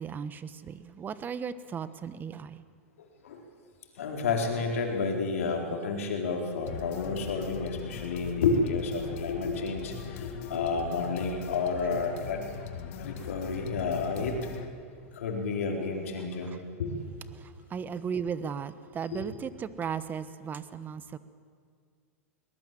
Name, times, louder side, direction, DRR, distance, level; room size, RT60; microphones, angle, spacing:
voice 1, 0.0-2.6 13.2-13.5 16.2-16.6 17.3-21.2, right 7 dB, 25° right, 14 dB, 1.2 m, -36 dB
voice 2, 4.0-12.5 13.0-14.4 15.1-16.5 16.8-17.1 19.1-19.2, left 4 dB, 75° left, 2 dB, 4.3 m, -30 dB
sound 1, 6.7-14.7, left 7 dB, 60° left, 2.0 m, -40 dB
22.5 x 19.5 x 7.8 m, 2.1 s
hypercardioid pair, 110°, 7 cm